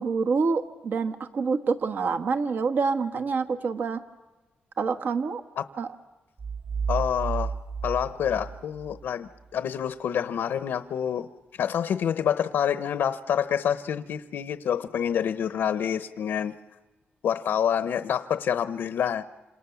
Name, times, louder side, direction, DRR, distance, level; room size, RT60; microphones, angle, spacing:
voice 1, 0.0-4.0 4.8-5.4 5.8-5.9, right 4 dB, 65° right, 6 dB, 1.3 m, -26 dB
sound 1, 6.4-9.1, right 5 dB, 45° right, 5.7 m, -32 dB
voice 2, 6.9-7.5 7.8-11.3 11.6-16.5 17.2-19.2, left 8 dB, 85° left, 12 dB, 0.9 m, -27 dB
28.0 x 27.0 x 7.1 m, 1.2 s
wide cardioid pair, 135°, 4 cm